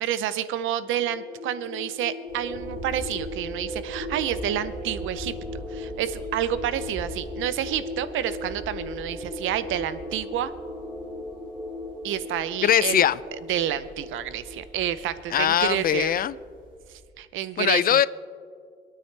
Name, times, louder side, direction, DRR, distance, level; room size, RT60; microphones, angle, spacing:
voice 1, 0.0-5.3 5.7-10.5 12.0-13.1 13.5-16.2 17.2-18.0, right 11 dB, 85° right, 14 dB, 0.7 m, -29 dB
sound 1, 0.8-15.2, left 1 dB, 5° right, 4.1 m, -38 dB
sound 2, 2.3-17.0, right 1 dB, 70° right, 4.0 m, -43 dB
voice 2, 12.6-13.2 15.3-16.3 17.6-18.1, left 10 dB, 50° left, 19 dB, 0.4 m, -21 dB
26.5 x 9.3 x 3.3 m, 2.2 s
cardioid pair, 90°, 20 cm